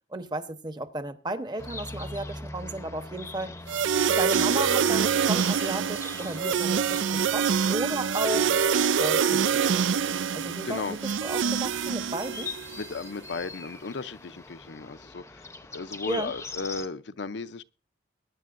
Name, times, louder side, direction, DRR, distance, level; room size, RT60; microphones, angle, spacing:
voice 1, 0.1-3.5 4.1-8.6 9.0-9.9 10.3-12.5 16.1-16.3, right 1 dB, 20° right, 0.9 m, -34 dB
sound 1, 1.6-16.9, left 3 dB, 15° left, 0.7 m, -43 dB
sound 2, 3.7-12.8, right 7 dB, 80° right, 0.5 m, -25 dB
voice 2, 10.6-11.0 12.8-17.6, left 4 dB, 65° left, 0.6 m, -35 dB
22.0 x 10.0 x 2.5 m
head